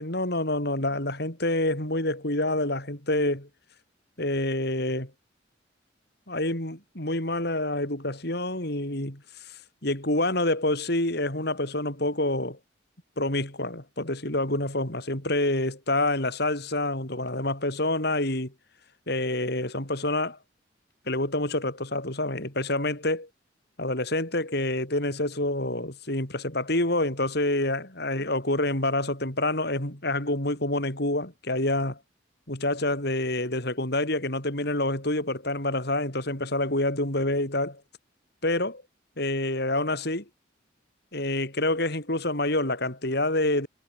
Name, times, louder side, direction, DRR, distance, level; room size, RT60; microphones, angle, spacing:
voice 1, 0.0-3.5 4.2-5.1 6.3-12.6 13.2-18.5 19.1-20.4 21.1-23.3 23.8-32.0 32.5-37.8 38.4-38.8 39.2-40.2 41.1-43.7, left 1 dB, 55° left, 6.1 m, -27 dB
head